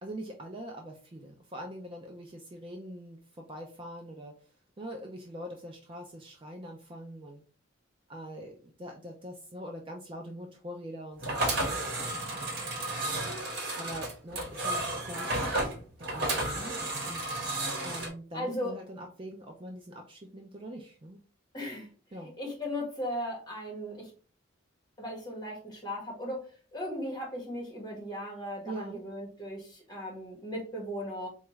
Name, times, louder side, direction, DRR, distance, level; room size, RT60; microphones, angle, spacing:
voice 1, 0.0-4.5 4.8-7.4 8.1-12.7 13.8-15.7 16.0-21.2 22.1-22.3 28.6-29.0, right 1 dB, 25° right, 2 dB, 0.4 m, -43 dB
sound 1, 11.2-18.1, right 2 dB, 50° right, 1.2 m, -32 dB
voice 2, 18.3-18.7 21.5-21.9 22.2-24.1 25.0-31.3, equal, 20° left, -2 dB, 1.3 m, -37 dB
4.2 x 2.3 x 3.0 m, 0.38 s
head